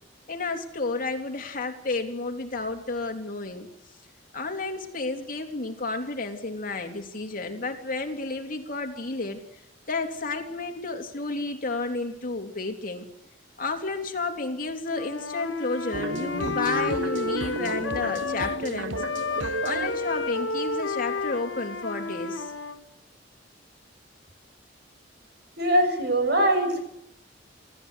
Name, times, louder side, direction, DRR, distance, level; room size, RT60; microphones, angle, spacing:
voice 1, 0.3-3.7 4.3-9.4 9.9-13.1 13.6-19.0 19.6-22.5, left 3 dB, 50° left, 4 dB, 3.4 m, -31 dB
Wind instrument woodwind instrument, 14.9-18.6 18.9-22.8, left 3 dB, 85° left, 2.2 m, -31 dB
sound 1, 15.9-21.7, right 2 dB, 85° right, 1.0 m, -34 dB
voice 2, 25.6-26.8, right 1 dB, 60° right, 5 dB, 7.8 m, -22 dB
27.5 x 17.5 x 8.2 m, 0.75 s
head